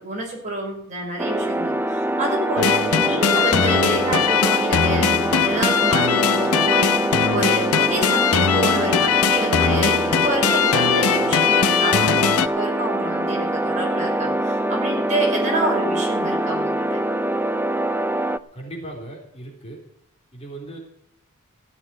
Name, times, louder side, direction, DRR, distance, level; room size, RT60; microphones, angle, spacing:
voice 1, 0.0-7.0 7.3-17.0, right 1 dB, 35° right, -1 dB, 5.7 m, -28 dB
sound 1, 1.2-18.4, right 1 dB, 10° right, 0.4 m, -24 dB
sound 2, 2.6-12.5, left 7 dB, 85° left, 0.7 m, -20 dB
voice 2, 18.5-19.8 20.3-20.8, right 1 dB, 30° left, -1 dB, 3.7 m, -37 dB
15.0 x 7.0 x 9.6 m, 0.74 s
head